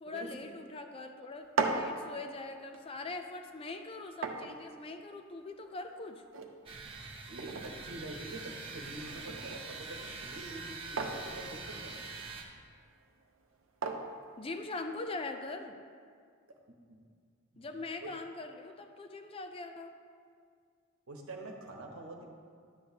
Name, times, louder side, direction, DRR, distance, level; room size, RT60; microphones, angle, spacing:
voice 1, 0.0-6.2 14.4-15.8 17.6-19.9, left 3 dB, 25° left, 6 dB, 0.4 m, -42 dB
sound 1, 1.3-15.2, right 4 dB, 60° right, 0.7 m, -41 dB
sound 2, 6.7-12.4, right 3 dB, 25° right, 0.7 m, -44 dB
voice 2, 7.3-12.1 16.7-17.0 17.5-17.7 18.0-18.1 21.1-22.2, right 2 dB, 80° right, 1 dB, 1.1 m, -46 dB
11.0 x 8.1 x 2.8 m, 2.1 s
head